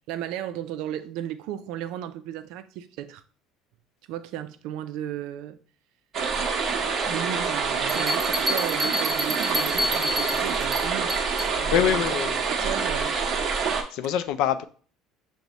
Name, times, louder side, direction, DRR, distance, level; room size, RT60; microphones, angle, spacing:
voice 1, 0.1-3.2 4.1-5.6 7.0-11.1 11.5-12.0 12.5-13.2, right 11 dB, 70° right, 0.4 m, -34 dB
sound 1, 6.1-13.8, right 5 dB, 40° right, 0.8 m, -26 dB
sound 2, 7.9-11.6, equal, 10° right, 0.9 m, -29 dB
voice 2, 11.7-12.4 13.9-14.6, left 10 dB, 70° left, 0.3 m, -24 dB
6.0 x 2.1 x 3.9 m
cardioid pair, 140°, 0 cm